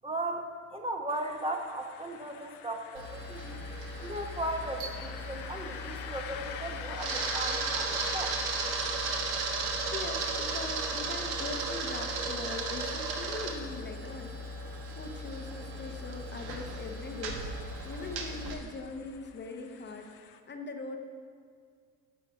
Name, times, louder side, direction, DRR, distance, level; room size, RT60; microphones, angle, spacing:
voice 1, 0.0-3.6 4.0-8.4, right 1 dB, 15° right, 3 dB, 0.9 m, -37 dB
sound 1, 1.1-20.4, left 9 dB, 65° left, 0.8 m, -48 dB
Camera, 3.0-18.5, right 3 dB, 60° right, 1.4 m, -35 dB
voice 2, 9.9-21.0, left 3 dB, 25° left, 4 dB, 0.9 m, -41 dB
10.5 x 5.5 x 5.4 m, 2.1 s
hypercardioid pair, 65°, 43 cm